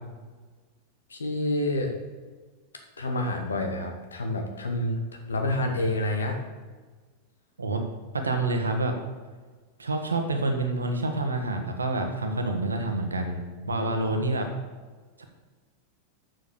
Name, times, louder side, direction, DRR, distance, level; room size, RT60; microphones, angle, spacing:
voice 1, 1.1-1.9 3.0-5.0 5.3-6.4 13.6-14.2, left 1 dB, 70° left, 3 dB, 1.3 m, -28 dB
voice 2, 8.1-8.9 9.8-14.5 15.2-15.3, right 2 dB, 75° right, 5 dB, 1.3 m, -28 dB
7.6 x 6.4 x 6.8 m, 1.4 s
figure-of-eight pair, 90°, 0 cm